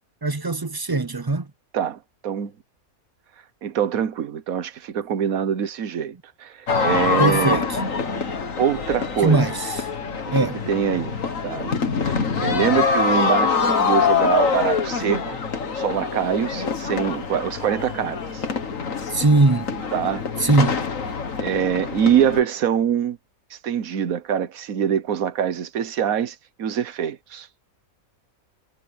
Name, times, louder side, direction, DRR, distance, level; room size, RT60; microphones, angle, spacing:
voice 1, 0.2-1.5 7.2-7.8 9.2-9.9 10.3-10.6 19.1-19.8 20.4-20.8, right 3 dB, 30° right, 0.4 m, -20 dB
voice 2, 1.7-2.5 3.6-6.1 6.4-7.6 8.6-9.4 10.3-11.2 11.4-11.7 12.0-15.4 15.7-18.4 19.9-20.2 21.4-23.2 23.6-27.5, right 9 dB, 75° right, 1.5 m, -24 dB
sound 1, 6.7-22.4, left 5 dB, 65° left, 2.1 m, -24 dB
omnidirectional pair, 1.5 m